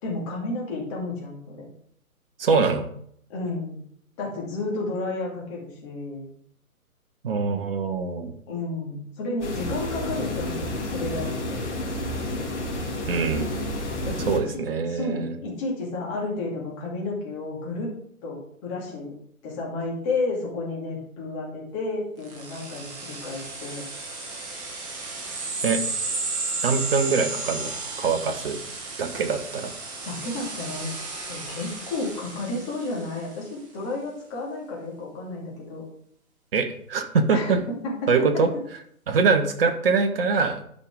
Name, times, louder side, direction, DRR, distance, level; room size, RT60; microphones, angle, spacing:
voice 1, 0.0-1.7 3.3-3.8 4.2-6.3 8.5-11.6 14.0-14.6 14.9-17.9 18.2-19.1 19.4-23.9 30.0-30.9 31.3-35.8 37.3-37.6 37.8-38.3, left 2 dB, 20° left, -3 dB, 2.3 m, -32 dB
voice 2, 2.4-2.9 7.2-8.3 13.1-13.7 14.3-15.3 25.6-25.8 26.6-28.6 29.0-29.7 36.5-37.6 38.1-38.5 39.1-40.6, right 4 dB, 40° right, 6 dB, 1.1 m, -23 dB
sound 1, 9.4-14.4, left 1 dB, 50° left, 2.4 m, -30 dB
sound 2, 22.2-33.3, right 3 dB, 20° right, 1.6 m, -33 dB
12.0 x 5.2 x 3.7 m, 0.67 s
figure-of-eight pair, 135°, 44 cm